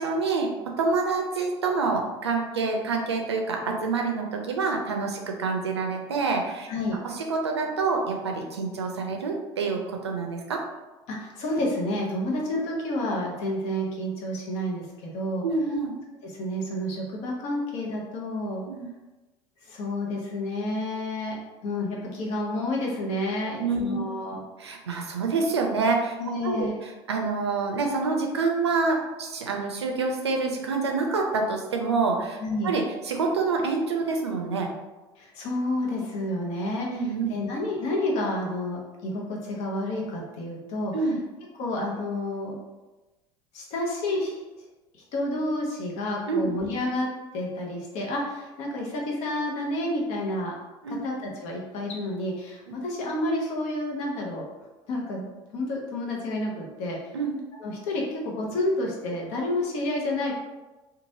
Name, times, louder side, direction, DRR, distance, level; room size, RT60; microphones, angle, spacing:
voice 1, 0.0-10.6 15.4-16.0 18.7-18.9 23.6-24.0 24.6-26.2 26.4-34.7 36.9-37.3 40.9-41.2 46.3-46.5 50.8-51.1 52.7-52.8 57.1-57.4, right 4 dB, 90° right, 2 dB, 0.4 m, -27 dB
voice 2, 6.7-7.0 11.1-15.5 16.2-18.6 19.6-21.4 21.6-24.4 26.2-26.7 32.4-32.7 35.2-36.9 37.3-40.9 41.6-42.6 43.5-44.4 44.9-47.1 47.3-50.6 51.0-54.5 54.9-55.2 55.5-57.1 57.6-60.3, left 1 dB, 60° left, -2 dB, 0.8 m, -30 dB
3.0 x 2.4 x 2.7 m, 1.1 s
hypercardioid pair, 70°, 14 cm